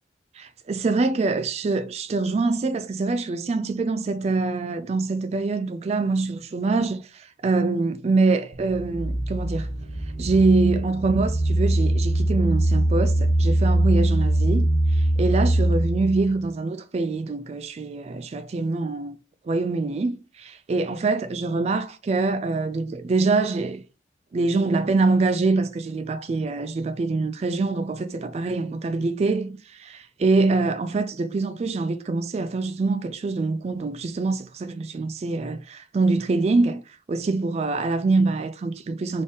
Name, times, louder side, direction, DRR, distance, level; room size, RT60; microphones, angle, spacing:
voice 1, 0.3-9.7 10.2-19.2 19.5-23.8 24.3-39.2, right 3 dB, 35° right, 0.3 m, -24 dB
sound 1, 8.5-16.4, right 1 dB, 70° right, 0.8 m, -22 dB
3.9 x 3.5 x 3.6 m
head